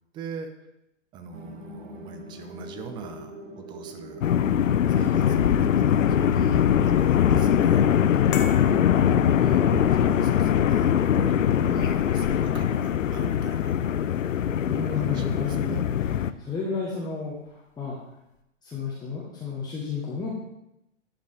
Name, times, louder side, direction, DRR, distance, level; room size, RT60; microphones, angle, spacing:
voice 1, 0.1-0.5 1.1-4.2 4.9-8.1 9.1-13.8 14.9-15.9, right 5 dB, 10° right, 7 dB, 0.5 m, -41 dB
sound 1, 1.3-15.9, right 1 dB, 90° right, 2.0 m, -43 dB
sound 2, 4.2-16.3, left 9 dB, 80° left, 0.5 m, -22 dB
sound 3, 8.3-14.7 15.0-15.1, left 8 dB, 45° left, 1.0 m, -42 dB
voice 2, 14.7-15.8 16.4-18.0 18.6-20.3, left 5 dB, 10° left, -6 dB, 1.2 m, -31 dB
11.0 x 5.2 x 3.4 m, 0.86 s
hypercardioid pair, 125°, 38 cm